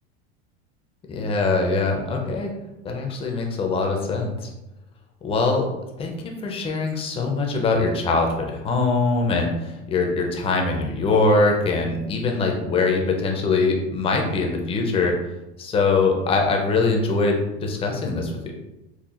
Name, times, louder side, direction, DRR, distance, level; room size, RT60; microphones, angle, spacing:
voice 1, 1.1-2.5 2.8-4.5 5.2-5.7 6.0-15.1 15.6-18.5, left 3 dB, 15° left, 2 dB, 0.5 m, -22 dB
5.6 x 2.1 x 2.4 m, 0.97 s
supercardioid pair, 140°, 33 cm